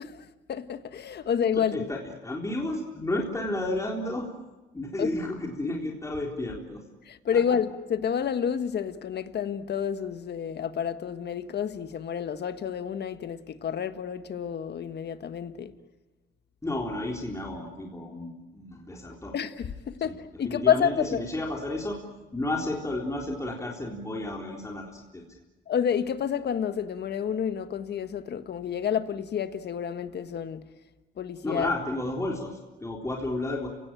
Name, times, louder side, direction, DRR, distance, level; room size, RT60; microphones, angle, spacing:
voice 1, 0.0-1.9 5.0-5.1 7.0-15.7 19.3-21.2 25.7-30.7 31.2-31.7, left 8 dB, 55° left, 1.5 m, -29 dB
voice 2, 1.5-4.3 4.7-6.8 16.6-19.3 20.0-20.1 20.4-22.0 22.3-25.3 31.4-33.7, left 1 dB, 15° left, 3.8 m, -32 dB
30.0 x 17.5 x 9.0 m
cardioid pair, 90°, 20 cm